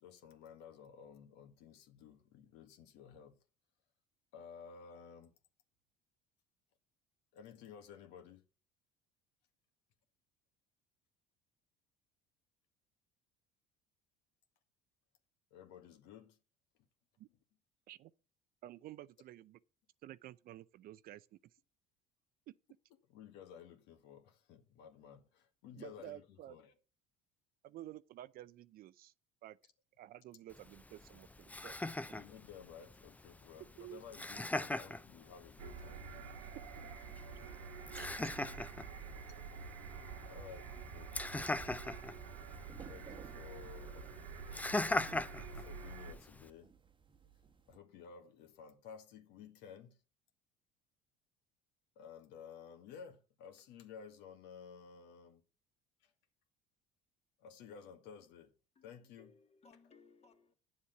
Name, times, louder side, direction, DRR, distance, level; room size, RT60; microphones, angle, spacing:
voice 1, 0.0-3.4 4.3-5.3 7.3-8.4 15.5-16.4 23.1-26.7 32.1-36.1 37.9-38.0 40.2-41.1 42.9-44.1 45.5-46.7 47.7-50.0 52.0-55.4 56.0-56.1 57.4-58.5 58.8-59.4, left 7 dB, 70° left, 1.8 m, -54 dB
voice 2, 18.6-19.6 20.0-21.4 25.8-26.6 27.6-29.1 29.4-29.6 30.0-31.8 33.8-34.0 37.9-38.1, right 14 dB, 55° right, 0.6 m, -51 dB
Laughter, 30.5-46.5, left 2 dB, 10° left, 0.6 m, -42 dB
sound 1, 35.6-46.1, right 5 dB, 90° right, 1.6 m, -48 dB
sound 2, 42.3-47.8, right 5 dB, 25° right, 1.2 m, -59 dB
voice 3, 58.8-60.5, left 4 dB, 35° left, 2.0 m, -64 dB
9.6 x 7.3 x 5.9 m
supercardioid pair, 80°, 18 cm